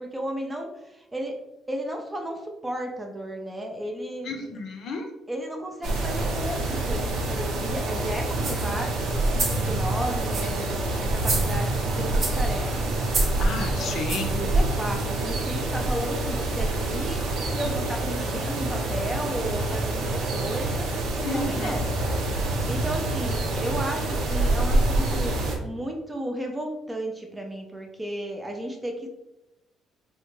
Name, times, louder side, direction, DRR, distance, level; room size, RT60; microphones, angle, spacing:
voice 1, 0.0-1.4 1.7-4.3 5.3-9.1 9.6-13.1 13.7-21.9 22.6-29.1, right 1 dB, 10° right, 2 dB, 0.4 m, -34 dB
voice 2, 4.2-5.1 13.4-14.4 21.2-21.8, left 3 dB, 55° left, 4 dB, 0.5 m, -32 dB
sound 1, 5.8-25.6, right 2 dB, 80° right, 0.8 m, -26 dB
sound 2, 8.4-8.7 9.2-9.7 10.2-10.6 11.1-11.8 12.2-12.5 13.1-13.4 14.1-14.4 15.0-15.1, right 3 dB, 40° right, 0.8 m, -31 dB
3.7 x 2.1 x 3.0 m, 0.93 s
cardioid pair, 150°, 0 cm